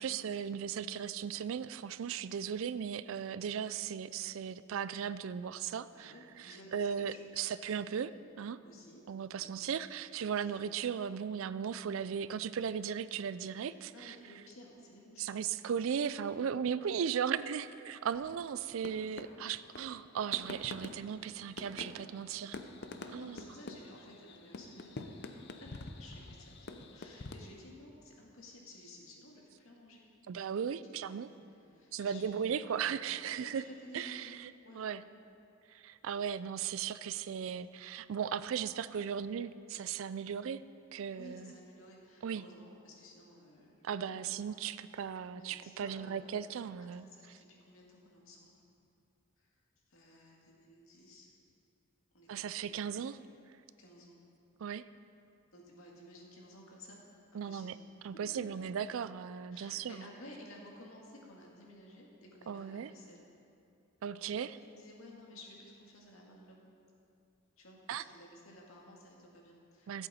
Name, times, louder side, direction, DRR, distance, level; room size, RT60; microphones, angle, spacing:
voice 1, 0.0-8.6 9.1-14.2 15.2-22.6 23.1-23.4 30.3-31.3 31.9-33.6 33.9-34.5 34.8-35.0 35.7-40.6 40.9-41.5 42.2-42.4 43.8-47.1 52.3-53.2 54.6-54.8 57.3-57.8 58.0-60.1 62.5-62.9 64.0-64.6 67.9-68.0 69.9-70.1, right 7 dB, 70° right, 15 dB, 0.3 m, -37 dB
voice 2, 5.9-7.8 8.6-9.0 9.3-9.5 10.4-10.7 13.5-15.3 16.8-17.0 22.9-30.0 31.0-31.4 31.7-34.3 34.6-34.9 41.1-43.7 44.0-44.3 44.6-44.9 45.4-46.4 46.9-48.5 49.4-49.5 49.9-51.3 52.1-52.9 53.8-54.2 55.5-57.0 57.3-57.7 58.1-58.6 59.5-63.3 64.2-66.7 67.6-70.1, left 1 dB, 75° left, -2 dB, 2.0 m, -55 dB
sound 1, 18.1-27.3, left 3 dB, 50° left, 0.6 m, -47 dB
14.5 x 8.2 x 4.3 m, 2.6 s
head